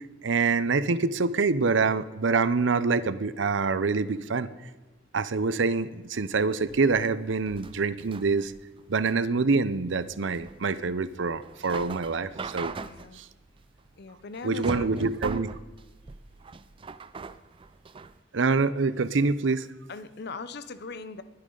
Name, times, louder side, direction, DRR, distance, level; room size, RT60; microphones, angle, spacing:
voice 1, 0.2-4.5 5.1-8.5 8.9-12.7 13.1-13.3 14.4-15.5 18.3-19.7, right 4 dB, 70° right, 15 dB, 0.6 m, -25 dB
sound 1, 6.6-18.2, right 4 dB, 25° right, 0.4 m, -41 dB
voice 2, 12.8-13.2 14.0-15.1 19.9-21.2, left 4 dB, 55° left, 12 dB, 0.7 m, -40 dB
21.0 x 9.9 x 3.9 m, 1.2 s
head